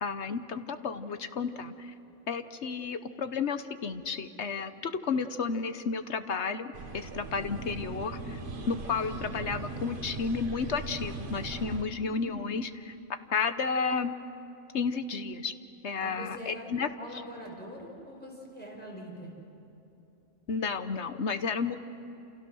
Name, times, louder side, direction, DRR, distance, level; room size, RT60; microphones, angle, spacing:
voice 1, 0.0-1.9 2.3-8.4 8.7-12.9 13.3-14.1 14.7-15.5 15.8-16.9 20.5-21.8, left 5 dB, 60° left, 10 dB, 1.2 m, -32 dB
sound 1, 6.7-11.8, right 4 dB, 45° right, 1.3 m, -40 dB
sound 2, 7.6-12.7, left 4 dB, 80° left, 1.5 m, -45 dB
voice 2, 16.0-16.6 17.0-19.3, equal, 5° left, -3 dB, 5.1 m, -43 dB
28.5 x 28.5 x 6.3 m, 2.9 s
omnidirectional pair, 1.3 m